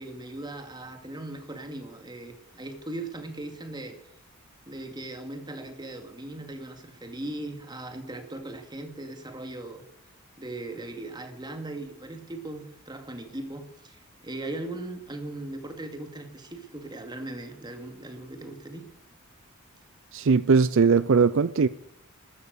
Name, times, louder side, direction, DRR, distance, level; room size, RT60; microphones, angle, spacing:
voice 1, 0.0-4.0 4.7-9.8 10.4-18.8, right 2 dB, 20° right, 2.3 m, -38 dB
voice 2, 20.1-21.7, right 5 dB, 60° right, 0.5 m, -20 dB
14.0 x 12.0 x 6.5 m
head